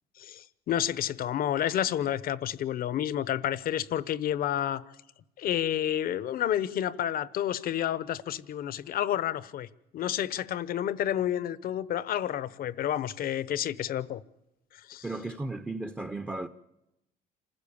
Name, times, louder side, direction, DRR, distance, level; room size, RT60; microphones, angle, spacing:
voice 1, 0.2-4.8 5.4-9.7 9.9-14.2 14.9-15.0, left 11 dB, 60° left, 0.9 m, -30 dB
voice 2, 15.0-16.5, right 2 dB, 10° right, 0.7 m, -35 dB
27.0 x 15.0 x 7.1 m
cardioid pair, 110°, 17 cm